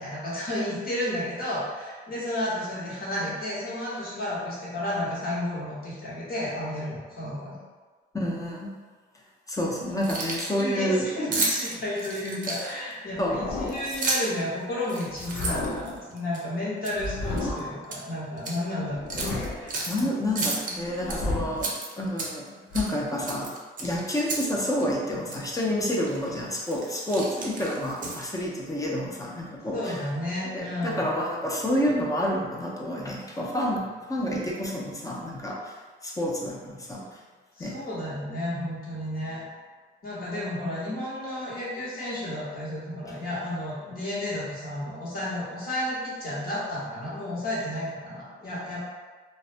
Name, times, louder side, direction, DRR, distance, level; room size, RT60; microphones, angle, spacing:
voice 1, 0.0-7.6 10.5-20.1 29.7-31.0 37.6-39.4 40.0-48.8, left 1 dB, 50° left, -8 dB, 1.1 m, -32 dB
voice 2, 8.1-8.7 9.5-11.1 12.5-12.8 13.2-13.5 19.9-21.7 22.0-22.4 22.7-23.5 23.8-30.1 30.5-35.7 36.0-37.2 37.6-37.7, left 1 dB, 15° left, -3 dB, 0.5 m, -29 dB
Keys jangling, 9.9-10.6 11.3-12.9 13.7-14.4 14.8-16.4 16.8-17.0 17.4-18.0 18.4-18.6 19.1-20.0 20.4-21.2 21.6-22.5 22.7-22.9 23.3-24.5 24.8-24.9 25.3-25.5 26.1-26.3 26.6-28.4, right 3 dB, 40° right, 0.5 m, -32 dB
sound 1, 13.1-14.0 15.1-16.0 16.9-17.8 18.8-19.8 20.8-21.7 22.7-22.8, left 2 dB, 70° left, 0.5 m, -32 dB
2.5 x 2.1 x 2.5 m, 1.4 s
cardioid pair, 90°, 20 cm